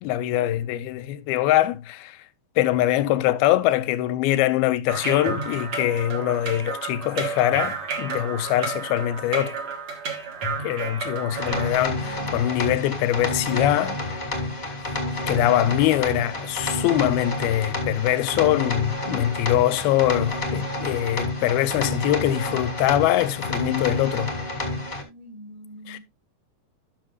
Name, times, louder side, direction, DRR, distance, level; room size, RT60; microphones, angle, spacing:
voice 1, 0.0-2.2 2.6-9.6 10.6-14.2 15.3-24.3 25.9-26.0, left 13 dB, 80° left, 2.5 m, -23 dB
sound 1, 4.9-11.7, right 4 dB, 50° right, 2.0 m, -31 dB
voice 2, 11.0-12.4 15.0-15.8 25.0-26.0, equal, 80° right, 7.5 m, -46 dB
sound 2, 11.3-25.0, left 2 dB, 20° left, 1.4 m, -29 dB
13.5 x 6.5 x 2.4 m
omnidirectional pair, 4.5 m